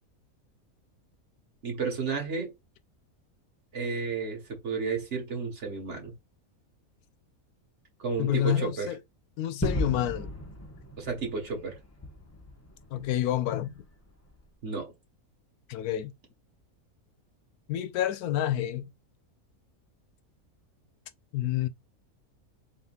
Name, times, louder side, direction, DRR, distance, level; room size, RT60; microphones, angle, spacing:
voice 1, 1.6-2.5 3.7-6.1 8.0-8.9 11.0-11.8 14.6-14.9, right 4 dB, 50° right, 1.8 m, -32 dB
voice 2, 8.2-9.0 9.4-10.3 12.9-13.7 15.7-16.1 17.7-18.9 21.3-21.7, left 12 dB, 90° left, 1.1 m, -28 dB
Gunshot gunfire / Fireworks / Boom, 9.6-14.4, left 1 dB, 25° left, 0.3 m, -36 dB
4.0 x 3.8 x 2.4 m
omnidirectional pair, 1.5 m